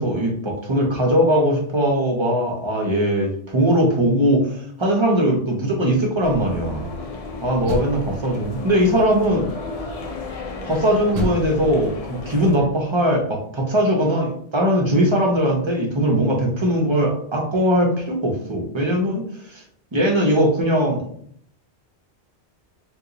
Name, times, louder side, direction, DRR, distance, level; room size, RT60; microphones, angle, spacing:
voice 1, 0.0-6.9 7.4-9.5 10.6-19.6 19.9-21.1, equal, 35° right, 0 dB, 0.5 m, -20 dB
sound 1, 6.2-12.5, left 3 dB, 70° left, 0.3 m, -34 dB
Door, 7.6-8.6 9.2-9.8 11.1-13.0, equal, 70° right, 0.8 m, -32 dB
2.8 x 2.3 x 3.8 m, 0.66 s
omnidirectional pair, 1.1 m